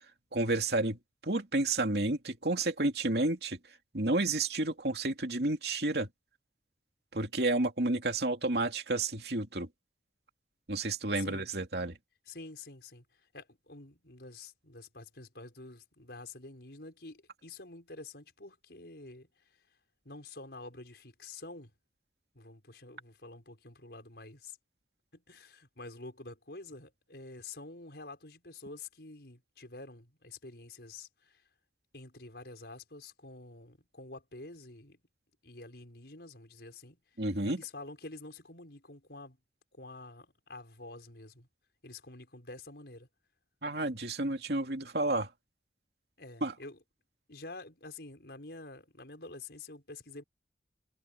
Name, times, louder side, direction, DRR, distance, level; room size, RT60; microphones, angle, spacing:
voice 1, 0.3-3.6 3.9-6.1 7.1-9.7 10.7-11.9 37.2-37.6 43.6-45.3 46.4-46.5, right 2 dB, 65° right, 2.8 m, -30 dB
voice 2, 11.1-11.5 12.3-19.3 20.1-21.7 22.3-24.6 25.1-31.4 31.9-35.0 35.4-37.0 37.4-39.4 39.7-41.5 41.8-43.1 46.2-46.8 47.3-50.2, left 2 dB, 65° left, 5.4 m, -48 dB
head